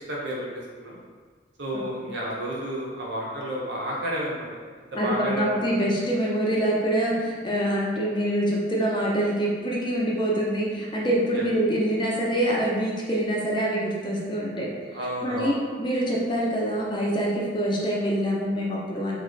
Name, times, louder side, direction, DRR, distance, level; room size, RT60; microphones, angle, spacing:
voice 1, 0.1-1.0 1.6-4.5 4.9-5.8 11.4-11.5 14.9-15.6, equal, 70° right, -4 dB, 1.0 m, -31 dB
voice 2, 4.9-14.7 15.2-19.2, right 1 dB, 25° left, -4 dB, 0.7 m, -25 dB
3.2 x 3.1 x 4.0 m, 1.5 s
head